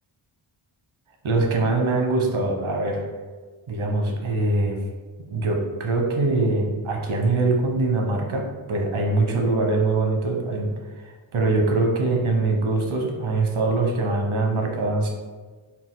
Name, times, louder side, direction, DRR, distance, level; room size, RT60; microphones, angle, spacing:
voice 1, 1.2-3.0 3.7-4.8 5.3-8.4 8.7-10.7 11.3-15.1, right 2 dB, 70° right, 1 dB, 0.9 m, -23 dB
4.2 x 2.3 x 3.8 m, 1.4 s
wide cardioid pair, 115°, 49 cm